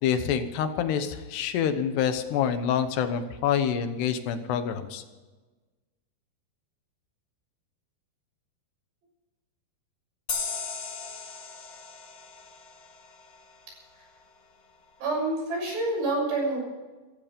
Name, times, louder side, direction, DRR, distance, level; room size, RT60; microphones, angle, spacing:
voice 1, 0.0-5.0, left 8 dB, 80° left, 9 dB, 3.2 m, -27 dB
sound 1, 10.3-13.6, left 5 dB, 55° left, 1.2 m, -37 dB
voice 2, 15.0-16.6, right 2 dB, 80° right, 0 dB, 8.8 m, -27 dB
18.0 x 15.0 x 5.3 m, 1.2 s
omnidirectional pair, 4.8 m